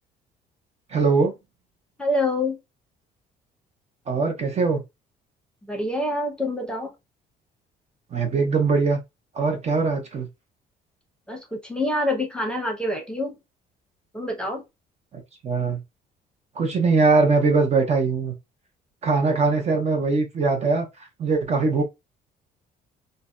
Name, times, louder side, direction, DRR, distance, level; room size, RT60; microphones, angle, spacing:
voice 1, 0.9-1.3 4.1-4.8 8.1-9.0 9.3-10.3 15.1-15.8 16.6-18.3 19.0-20.9 21.2-21.8, right 4 dB, 40° right, 0.7 m, -21 dB
voice 2, 2.0-2.6 5.7-6.9 11.3-13.3 14.1-14.6, left 1 dB, 5° left, 0.8 m, -26 dB
2.6 x 2.1 x 2.3 m
cardioid pair, 110°, 17 cm